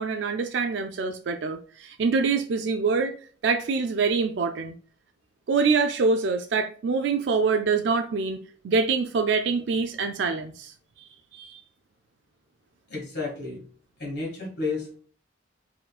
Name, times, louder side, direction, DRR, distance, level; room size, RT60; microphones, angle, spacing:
voice 1, 0.0-3.2 3.4-4.7 5.5-10.7 11.3-11.6, right 4 dB, 65° right, 0.4 m, -25 dB
voice 2, 12.9-13.6 14.0-15.0, left 3 dB, 60° left, 2.0 m, -32 dB
4.2 x 3.8 x 2.3 m
head